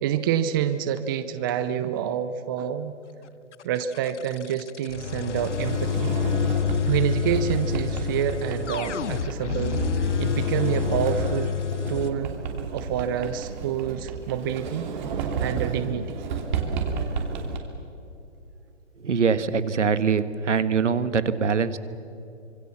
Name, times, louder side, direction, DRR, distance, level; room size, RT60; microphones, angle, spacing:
voice 1, 0.0-2.9 3.6-6.2 6.9-11.5 11.9-12.3 12.7-14.9 15.4-16.2, right 9 dB, 20° right, 11 dB, 0.6 m, -27 dB
sound 1, 3.5-12.1, left 9 dB, 70° left, 0.8 m, -28 dB
Sliding door, 5.3-17.6, right 5 dB, 40° right, 3.1 m, -31 dB
voice 2, 19.0-21.8, right 6 dB, 75° right, 13 dB, 1.6 m, -23 dB
26.0 x 24.5 x 7.2 m, 2.7 s
hypercardioid pair, 145°, 36 cm